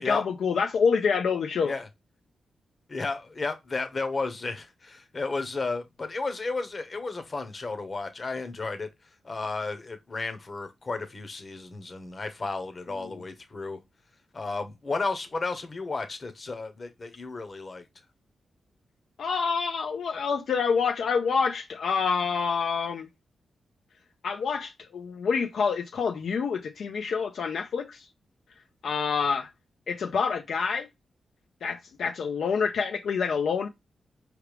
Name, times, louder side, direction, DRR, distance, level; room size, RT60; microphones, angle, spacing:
voice 1, 0.0-1.7 13.0-13.2 19.2-23.1 24.2-28.1 28.8-29.5 29.9-30.9 31.6-33.7, left 5 dB, 75° left, 0.5 m, -27 dB
voice 2, 2.9-8.9 9.2-13.8 14.3-17.8, left 3 dB, 40° left, 0.9 m, -33 dB
4.8 x 3.2 x 3.2 m
cardioid pair, 75°, 0 cm